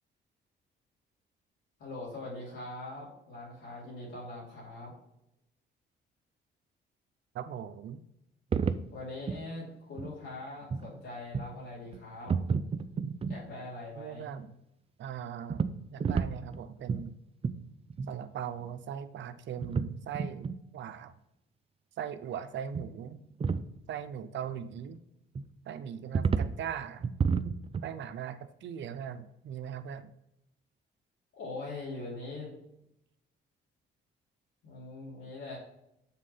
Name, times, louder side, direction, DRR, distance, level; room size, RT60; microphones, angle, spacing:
voice 1, 1.8-4.9 8.9-12.4 13.3-14.3 31.4-32.5 34.6-35.6, left 2 dB, 80° left, -7 dB, 2.9 m, -42 dB
voice 2, 7.3-8.0 14.0-14.5 15.0-15.6 15.9-17.1 18.1-21.1 22.0-23.2 23.9-25.0 25.7-27.1 27.8-30.1, right 8 dB, 70° right, 11 dB, 0.7 m, -39 dB
sound 1, 8.5-8.9 9.3-9.4 9.9-10.1 10.6-10.9 11.3-11.6 11.9-12.0 12.3-13.4 15.5-16.6 16.9-17.1 17.4-17.6 17.9-18.1 18.4-18.5 18.6-18.7 19.6-19.9 20.1-20.6 22.7-22.9 23.1-23.7 25.3-25.5 26.1-26.5 27.0-27.9, right 5 dB, 30° right, 0.5 m, -30 dB
7.4 x 3.6 x 5.5 m, 0.82 s
cardioid pair, 90°, 20 cm